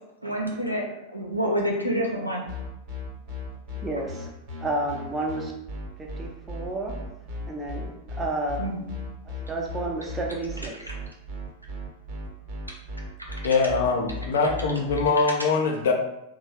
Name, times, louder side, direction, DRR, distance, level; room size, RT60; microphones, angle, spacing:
voice 1, 0.2-0.9 1.1-2.4 8.6-8.8, equal, 90° right, -1 dB, 0.5 m, -27 dB
sound 1, 2.5-15.1, left 2 dB, 40° right, 0.8 m, -35 dB
voice 2, 3.7-4.3 4.6-5.5 6.0-7.0 7.5-8.6 9.4-10.8, right 2 dB, 15° right, 0 dB, 0.6 m, -31 dB
voice 3, 13.4-15.9, left 4 dB, 60° left, 2 dB, 0.5 m, -23 dB
3.0 x 2.0 x 3.0 m, 0.86 s
figure-of-eight pair, 90°, 0 cm